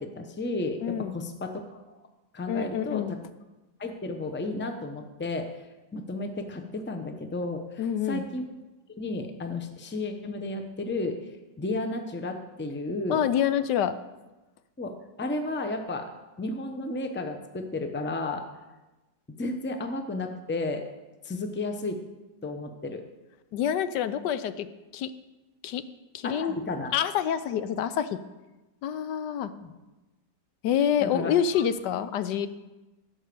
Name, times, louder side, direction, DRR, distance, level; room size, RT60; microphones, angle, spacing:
voice 1, 0.0-1.8 2.3-3.2 3.8-5.6 5.9-8.4 9.0-11.2 11.6-13.2 14.8-16.1 16.4-18.4 19.4-20.8 21.2-22.0 22.4-23.0 26.2-26.9 29.6-29.7 31.0-31.6, left 2 dB, 15° left, 6 dB, 0.4 m, -33 dB
voice 2, 0.8-1.2 2.5-3.2 7.8-8.2 13.1-13.9 23.5-24.7 24.9-25.1 25.6-25.8 26.1-26.5 26.9-28.2 28.8-29.5 30.6-32.5, left 9 dB, 75° left, 13 dB, 1.2 m, -27 dB
16.5 x 5.5 x 6.9 m, 1.1 s
omnidirectional pair, 2.0 m